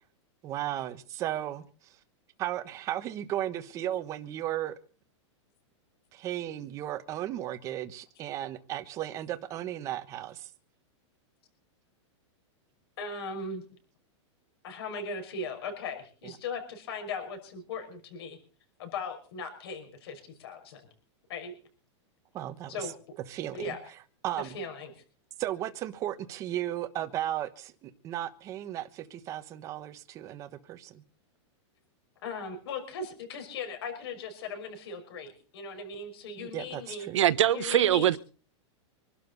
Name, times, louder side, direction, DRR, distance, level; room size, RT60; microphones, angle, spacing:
voice 1, 0.4-1.9 2.4-4.7 6.1-10.5 22.3-22.9 23.3-23.8 24.2-24.6 25.4-31.0 36.4-37.2, right 12 dB, 20° right, 1.1 m, -35 dB
voice 2, 13.0-13.6 14.6-18.4 18.8-20.8 21.3-21.5 22.7-22.9 23.5-23.8 24.4-24.9 32.2-37.1 37.5-38.1, left 4 dB, 55° left, 6.0 m, -38 dB
voice 3, 37.1-38.2, right 11 dB, 80° right, 1.2 m, -22 dB
25.5 x 12.0 x 4.0 m
supercardioid pair, 175°, 16 cm